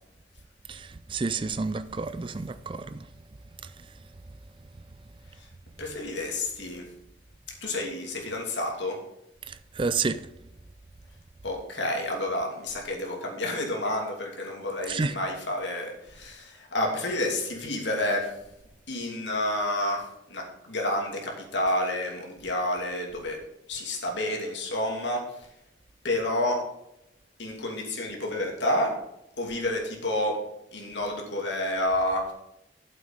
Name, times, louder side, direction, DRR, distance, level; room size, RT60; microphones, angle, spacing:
voice 1, 0.7-3.1 3.6-3.9 9.5-10.3 14.9-15.2, right 4 dB, 25° right, 0.4 m, -30 dB
voice 2, 5.8-6.9 7.6-9.0 11.4-18.4 18.9-23.4 23.7-25.5 26.0-26.6 27.4-29.0 29.4-30.4 30.7-32.3, left 1 dB, 75° left, 2.7 m, -29 dB
8.9 x 7.6 x 5.2 m
head